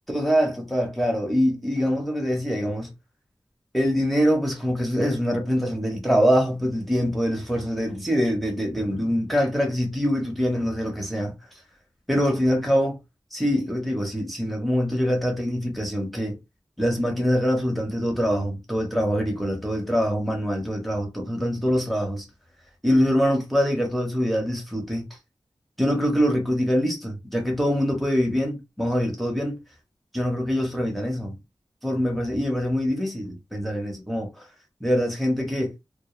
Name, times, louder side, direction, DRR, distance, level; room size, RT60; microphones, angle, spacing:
voice 1, 0.1-2.9 3.7-11.3 12.1-13.0 13.3-16.4 16.8-22.3 22.8-25.0 25.8-29.6 30.1-31.4 31.8-34.5 34.8-35.7, equal, ahead, 0.9 m, -24 dB
2.2 x 2.1 x 3.0 m
cardioid pair, 45°, 9 cm